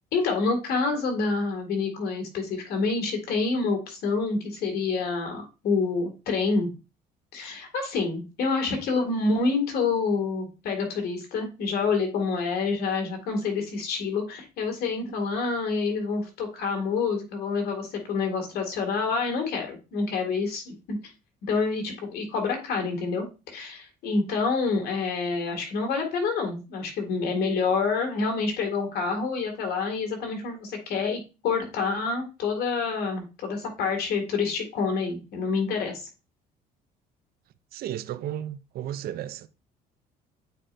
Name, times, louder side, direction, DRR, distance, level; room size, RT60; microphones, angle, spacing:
voice 1, 0.1-6.7 7.3-21.0 21.5-36.0, left 4 dB, 70° left, 2.0 m, -27 dB
voice 2, 37.7-39.5, right 11 dB, 65° right, 0.5 m, -34 dB
8.8 x 4.3 x 2.5 m
cardioid pair, 110°, 17 cm